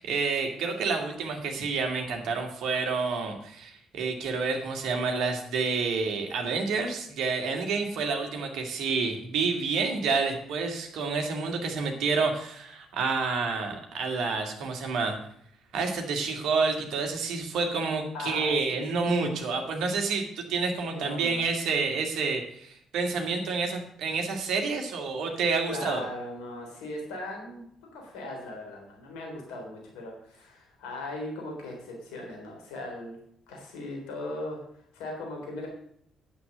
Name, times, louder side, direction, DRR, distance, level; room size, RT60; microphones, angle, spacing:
voice 1, 0.0-15.2 15.7-26.0, right 4 dB, 60° right, 3 dB, 2.2 m, -29 dB
voice 2, 18.1-19.2 20.9-21.4 25.7-27.6 27.9-33.2 33.5-34.6 34.9-35.7, left 2 dB, 65° left, 0 dB, 3.6 m, -38 dB
9.6 x 8.3 x 6.6 m, 0.68 s
figure-of-eight pair, 45°, 0 cm